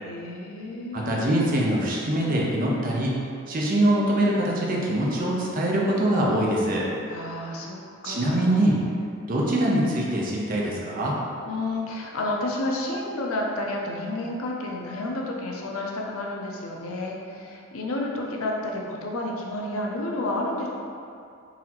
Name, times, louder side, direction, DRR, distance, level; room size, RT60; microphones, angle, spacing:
voice 1, 0.0-1.1 7.1-7.8 8.0-8.6 11.4-20.7, left 1 dB, 80° left, -1 dB, 0.5 m, -30 dB
voice 2, 0.9-3.1 3.5-6.8 8.0-8.8 9.3-11.1, right 1 dB, 40° right, -3 dB, 0.5 m, -23 dB
4.0 x 2.8 x 2.9 m, 2.5 s
head